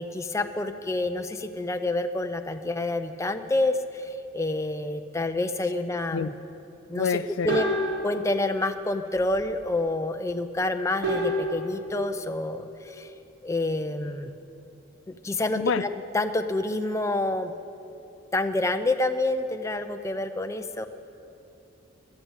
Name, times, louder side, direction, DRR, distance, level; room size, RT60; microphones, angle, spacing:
voice 1, 0.0-6.3 6.9-7.2 7.4-7.7 8.0-13.1 13.4-14.3 15.1-17.5 18.3-20.9, left 2 dB, 15° left, 0.5 m, -28 dB
voice 2, 6.9-7.6 15.6-15.8, left 6 dB, 70° left, 0.4 m, -26 dB
sound 1, 7.5-9.6 11.0-14.4 14.8-15.0 15.8-17.3 17.6-18.0, equal, 65° right, 4.4 m, -34 dB
14.5 x 11.5 x 8.0 m
head